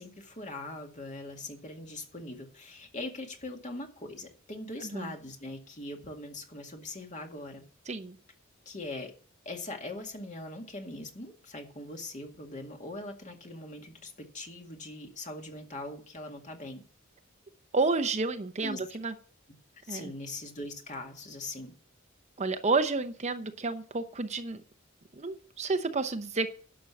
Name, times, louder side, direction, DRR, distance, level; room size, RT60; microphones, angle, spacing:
voice 1, 0.0-7.6 8.7-9.1 9.5-16.8 18.6-18.8 19.8-21.7, left 2 dB, 40° left, 3 dB, 2.1 m, -41 dB
voice 2, 4.8-5.1 7.9-8.2 17.7-19.1 19.9-20.1 22.4-24.6 25.2-26.5, right 3 dB, 35° right, 8 dB, 0.8 m, -30 dB
11.5 x 6.3 x 7.1 m, 0.43 s
head